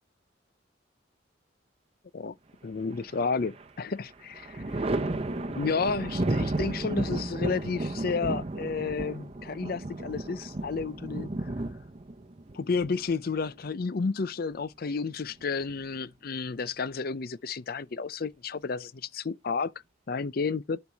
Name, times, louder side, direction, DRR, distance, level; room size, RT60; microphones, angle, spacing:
voice 1, 2.6-4.8 5.5-11.5 12.5-19.7 20.1-20.8, left 4 dB, 55° left, 0.5 m, -31 dB
Thunder, 2.9-3.7 4.1-13.6 15.1-16.0, right 2 dB, 35° right, 0.8 m, -33 dB
11.0 x 4.6 x 3.4 m
head